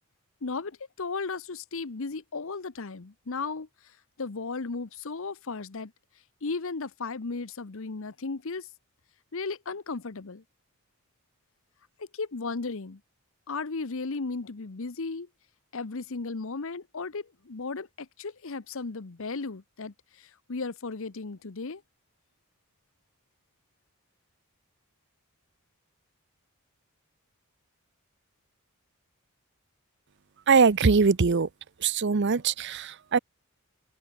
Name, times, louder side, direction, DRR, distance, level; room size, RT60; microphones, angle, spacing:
voice 1, 0.4-3.7 4.2-5.9 6.4-8.7 9.3-10.4 12.0-13.0 13.5-15.3 15.7-21.8, left 4 dB, 60° left, 0.9 m, -35 dB
voice 2, 30.5-31.5 31.8-33.2, right 5 dB, 50° right, 0.6 m, -22 dB
head